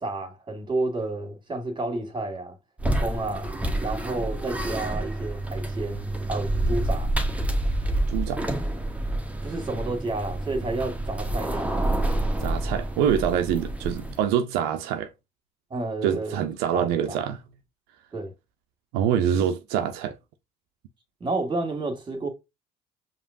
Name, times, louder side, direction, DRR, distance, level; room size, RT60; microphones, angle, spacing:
voice 1, 0.0-2.6 2.9-3.5 3.8-7.1 9.4-11.8 15.7-16.4 16.7-17.2 18.1-18.3 21.2-22.3, right 2 dB, 30° right, 1.8 m, -30 dB
sound 1, 2.8-14.2, right 1 dB, 10° right, 0.9 m, -28 dB
voice 2, 8.1-8.5 12.4-15.1 16.0-17.4 18.9-20.2, right 9 dB, 85° right, 0.4 m, -25 dB
4.9 x 2.9 x 2.5 m
supercardioid pair, 70°, 16 cm